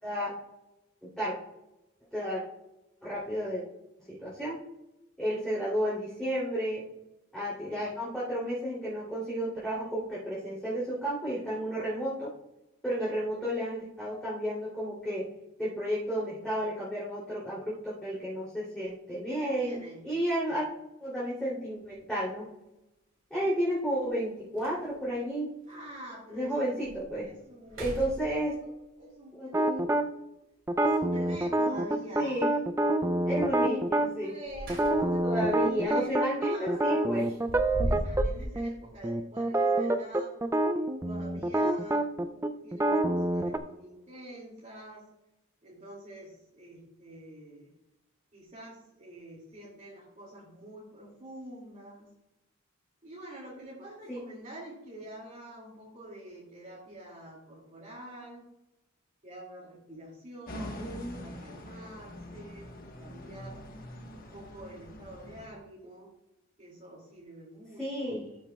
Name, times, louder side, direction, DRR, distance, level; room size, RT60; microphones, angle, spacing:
voice 1, 0.0-0.3 1.0-1.4 2.1-2.4 3.0-3.6 4.1-4.6 5.2-6.8 7.3-12.3 12.8-15.3 15.6-19.8 20.0-20.7 21.0-22.4 23.3-25.5 26.3-27.3 27.8-28.5 29.3-29.7 32.2-32.5 33.2-34.3 35.2-37.3 54.1-54.2 60.7-61.2 67.8-68.2, equal, 5° left, -10 dB, 2.9 m, -32 dB
voice 2, 3.1-3.5 19.1-20.1 25.7-28.3 28.6-29.9 30.8-32.4 34.2-37.2 37.7-40.4 41.0-45.1 45.6-47.7 48.3-52.1 53.0-58.5 59.2-63.6 64.1-66.1 66.6-68.4, right 1 dB, 35° right, -5 dB, 2.4 m, -47 dB
sound 1, 21.8-22.0 23.7-23.8 24.2-24.3 24.6-25.1 25.7-25.8 26.3-26.4 26.8-27.2 27.6-28.7 30.8-31.5 34.2-35.3 35.6-35.9 37.2-38.5, equal, 65° right, 3.2 m, -36 dB
sound 2, 29.5-30.1 30.7-34.1 34.7-38.3 38.6-38.7 39.0-43.6, right 1 dB, 15° right, 0.4 m, -27 dB
sound 3, 60.5-65.5, equal, 45° left, 1.3 m, -44 dB
13.0 x 7.0 x 2.3 m, 0.92 s
head